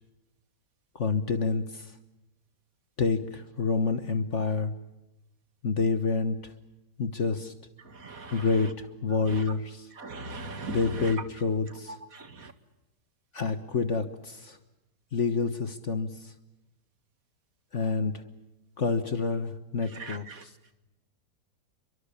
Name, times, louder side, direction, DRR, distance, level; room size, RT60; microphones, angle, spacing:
voice 1, 0.9-1.9 3.0-4.7 5.6-6.5 7.0-7.5 8.3-9.9 10.7-12.0 13.3-14.6 15.1-16.1 17.7-18.2 18.8-20.5, left 4 dB, 45° left, 1.6 m, -28 dB
voice 2, 7.9-8.5 9.3-9.4 10.0-11.1 12.1-12.5 19.9-20.4, right 2 dB, 55° right, 2.4 m, -39 dB
29.5 x 24.0 x 7.0 m
omnidirectional pair, 1.8 m